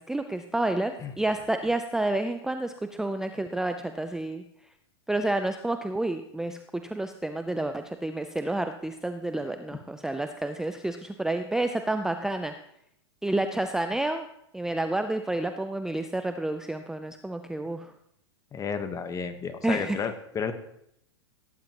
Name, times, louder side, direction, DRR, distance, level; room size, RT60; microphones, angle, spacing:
voice 1, 0.1-4.4 5.1-12.5 13.2-14.3 14.5-17.9 19.6-20.0, right 2 dB, 5° right, 7 dB, 0.5 m, -29 dB
voice 2, 18.5-20.5, left 6 dB, 25° left, 9 dB, 1.2 m, -32 dB
17.0 x 10.0 x 3.0 m, 0.77 s
hypercardioid pair, 110°, 15 cm